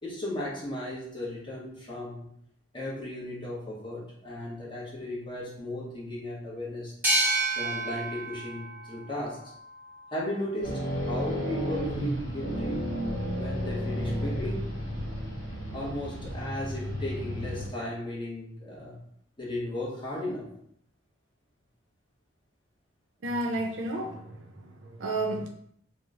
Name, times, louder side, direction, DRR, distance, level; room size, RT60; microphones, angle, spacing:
voice 1, 0.0-2.3 2.7-6.9 7.5-9.5 10.1-12.9 13.4-14.7 15.7-19.0 19.4-20.5, left 1 dB, 25° left, -5 dB, 1.0 m, -36 dB
sound 1, 7.0-10.4, right 2 dB, 10° right, 0.7 m, -30 dB
sound 2, 10.6-17.7, equal, 50° left, 1.5 m, -32 dB
voice 2, 23.2-25.5, right 2 dB, 80° right, 3 dB, 0.5 m, -32 dB
3.0 x 2.1 x 3.6 m, 0.68 s
head